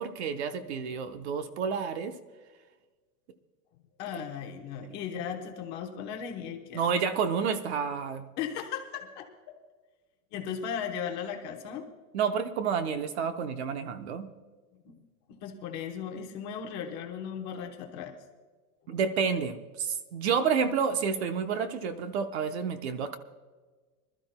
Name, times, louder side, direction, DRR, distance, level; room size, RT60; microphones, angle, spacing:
voice 1, 0.0-2.1 4.1-4.2 6.7-8.2 12.1-14.3 18.9-23.2, right 6 dB, 45° right, 9 dB, 0.9 m, -30 dB
voice 2, 4.0-6.8 8.4-9.5 10.3-11.9 14.8-15.0 15.3-18.2 18.9-19.0, left 8 dB, 20° left, 2 dB, 0.9 m, -37 dB
25.0 x 13.0 x 2.2 m, 1.4 s
supercardioid pair, 175°, 46 cm